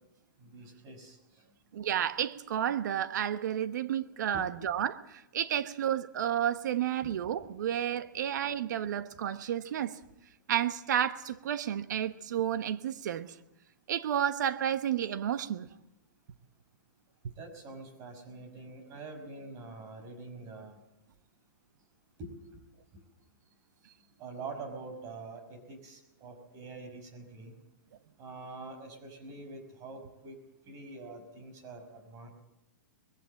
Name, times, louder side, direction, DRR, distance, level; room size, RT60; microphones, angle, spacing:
voice 1, 0.4-1.2 4.3-4.7 7.0-7.1 17.4-20.8 22.2-22.6 24.2-27.5 28.2-30.4 30.7-32.3, right 3 dB, 35° right, 6 dB, 5.5 m, -45 dB
voice 2, 1.7-9.9 10.5-13.3 13.9-15.7, right 10 dB, 65° right, 12 dB, 1.2 m, -31 dB
21.0 x 16.0 x 7.7 m, 0.90 s
hypercardioid pair, 130°, 10 cm